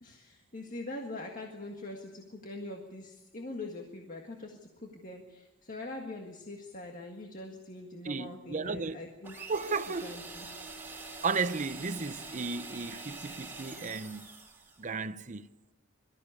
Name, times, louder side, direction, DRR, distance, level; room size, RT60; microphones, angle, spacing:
voice 1, 0.0-9.4 10.0-10.5, left 2 dB, 40° left, 1.8 m, -43 dB
voice 2, 8.0-9.0 9.5-10.2 11.2-14.2 14.8-15.4, right 4 dB, 35° right, 0.7 m, -34 dB
sound 1, 9.2-14.9, right 3 dB, 10° right, 3.8 m, -45 dB
23.5 x 14.0 x 8.4 m
head